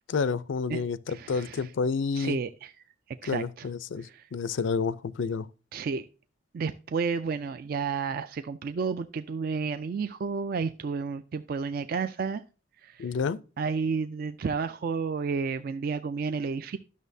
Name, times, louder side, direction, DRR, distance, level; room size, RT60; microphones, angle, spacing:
voice 1, 0.1-2.4 3.3-5.5 13.0-13.4, left 5 dB, 85° left, 0.4 m, -29 dB
voice 2, 1.1-1.7 2.2-2.7 3.2-3.7 4.0-4.3 5.7-6.1 6.5-12.4 12.8-13.1 13.6-16.8, right 5 dB, 50° right, 0.3 m, -31 dB
11.0 x 6.3 x 2.6 m
head